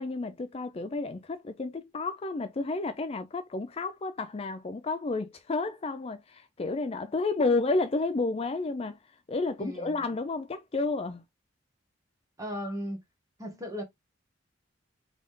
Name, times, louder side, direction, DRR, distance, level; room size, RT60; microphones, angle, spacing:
voice 1, 0.0-9.0 9.3-11.2, left 3 dB, 30° left, 0.4 m, -31 dB
voice 2, 9.6-10.0 12.4-13.0 13.4-13.8, equal, 15° right, 1.8 m, -36 dB
3.9 x 3.6 x 3.6 m
head